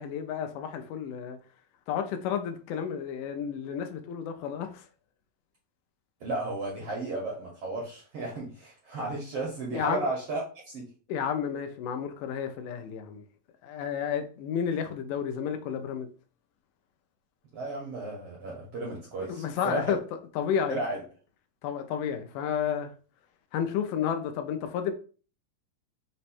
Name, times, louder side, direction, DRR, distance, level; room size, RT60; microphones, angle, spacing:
voice 1, 0.0-1.4 1.9-4.9 9.7-10.0 11.1-13.2 13.6-16.1 19.3-20.0 20.4-20.8 21.6-22.9 23.5-24.9, left 8 dB, 80° left, 2.1 m, -31 dB
voice 2, 6.2-10.9 17.5-19.8 20.7-21.0, right 2 dB, 65° right, 1.4 m, -34 dB
5.3 x 2.1 x 4.2 m
omnidirectional pair, 3.8 m